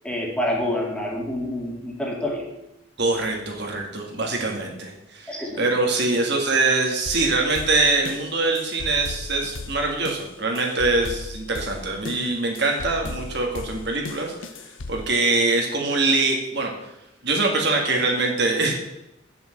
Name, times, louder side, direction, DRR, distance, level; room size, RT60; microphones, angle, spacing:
voice 1, 0.0-2.5 5.3-5.6, left 1 dB, 5° left, -2 dB, 2.2 m, -27 dB
voice 2, 3.0-14.3 14.9-16.7 17.2-18.7, right 3 dB, 60° right, 1 dB, 2.0 m, -23 dB
sound 1, 7.1-15.1, left 3 dB, 85° left, 0.9 m, -37 dB
8.3 x 7.1 x 6.5 m, 0.87 s
head